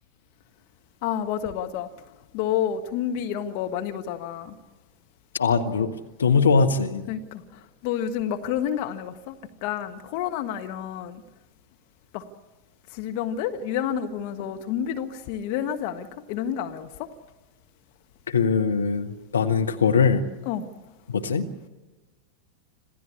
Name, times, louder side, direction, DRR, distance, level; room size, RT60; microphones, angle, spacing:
voice 1, 1.0-1.9 2.3-4.6 7.1-11.2 12.1-12.2 12.9-17.1 20.4-20.6, left 9 dB, 45° left, 6 dB, 1.3 m, -29 dB
voice 2, 5.3-7.0 18.3-20.2 21.1-21.5, left 5 dB, 70° left, 6 dB, 1.4 m, -21 dB
27.0 x 15.5 x 8.6 m, 1.1 s
figure-of-eight pair, 90°, 0 cm